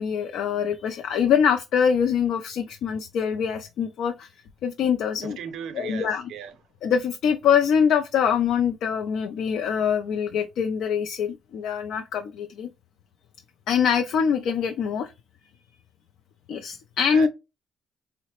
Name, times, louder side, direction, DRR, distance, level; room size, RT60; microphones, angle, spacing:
voice 1, 0.0-4.3 4.6-5.4 5.7-6.2 6.8-12.7 13.7-15.1 16.5-17.3, left 7 dB, 80° left, 0.3 m, -24 dB
voice 2, 5.2-6.5 17.1-17.3, right 8 dB, 80° right, 0.5 m, -37 dB
3.8 x 2.0 x 2.9 m
cardioid pair, 90°, 0 cm